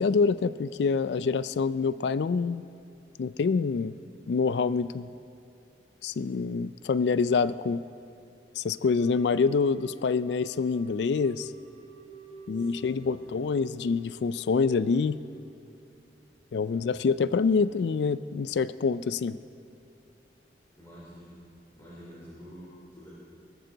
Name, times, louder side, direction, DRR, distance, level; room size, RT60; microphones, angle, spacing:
voice 1, 0.0-2.7 3.2-3.9 4.3-5.1 6.0-7.8 8.6-11.5 12.5-15.2 16.5-19.4, left 5 dB, 75° left, 15 dB, 0.4 m, -26 dB
sound 1, 8.8-15.5, right 2 dB, 40° right, 1.9 m, -48 dB
voice 2, 12.5-13.6 16.7-17.0 20.8-21.4 21.7-23.1, equal, 20° left, -9 dB, 3.8 m, -49 dB
23.5 x 14.5 x 4.0 m, 2.7 s
head